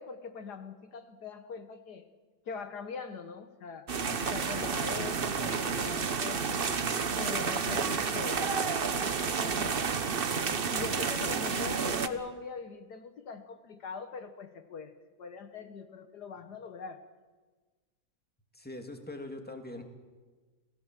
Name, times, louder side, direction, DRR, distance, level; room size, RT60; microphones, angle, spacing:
voice 1, 0.0-2.1 2.4-3.9 4.3-6.6 7.2-10.0 10.7-14.9 15.2-17.0, left 5 dB, 70° left, 9 dB, 1.7 m, -42 dB
sound 1, 3.9-12.1, right 5 dB, 40° right, 1.0 m, -30 dB
voice 2, 18.5-19.8, left 1 dB, 5° left, 4 dB, 2.3 m, -42 dB
28.5 x 17.5 x 7.5 m, 1.4 s
omnidirectional pair, 1.9 m